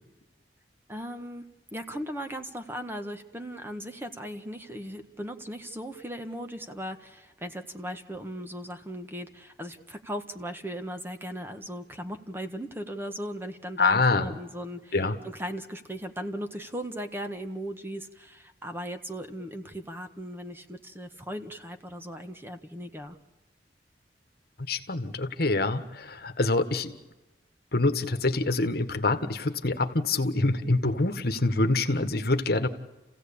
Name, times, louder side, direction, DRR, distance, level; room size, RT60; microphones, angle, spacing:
voice 1, 0.9-15.0 15.2-23.2, equal, 15° right, 6 dB, 1.5 m, -37 dB
voice 2, 13.8-14.3 14.9-15.2 24.7-26.9 27.7-32.7, left 2 dB, 60° left, 9 dB, 1.5 m, -25 dB
29.5 x 16.0 x 8.7 m, 1.1 s
head